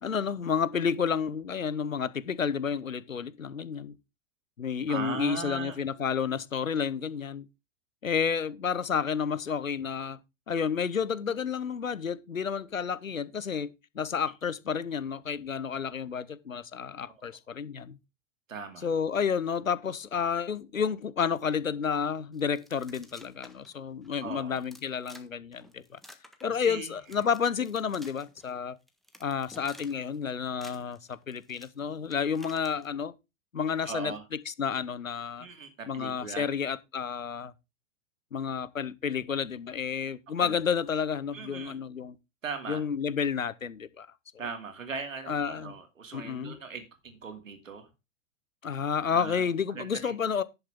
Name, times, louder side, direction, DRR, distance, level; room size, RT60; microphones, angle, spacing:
voice 1, 0.0-4.0 4.6-7.5 8.0-10.2 10.5-18.0 18.8-26.0 26.4-28.8 29.2-33.1 33.5-35.5 35.9-37.5 38.3-42.2 42.7-44.1 45.3-45.7 46.1-46.6 48.6-50.4, left 6 dB, 90° left, 0.9 m, -31 dB
voice 2, 4.9-5.8 17.1-17.2 18.5-18.9 24.2-24.6 26.5-26.9 33.8-34.2 35.4-36.5 40.4-40.6 41.3-41.8 42.4-42.8 44.4-47.9 49.1-50.2, right 5 dB, 80° right, 2.7 m, -39 dB
sound 1, 22.3-23.7 24.0-24.1 24.5-25.3 25.5-26.8 27.1-28.5 28.9-30.2 30.4-32.9, equal, ahead, 1.4 m, -53 dB
11.0 x 8.1 x 3.6 m
figure-of-eight pair, 95°, 39 cm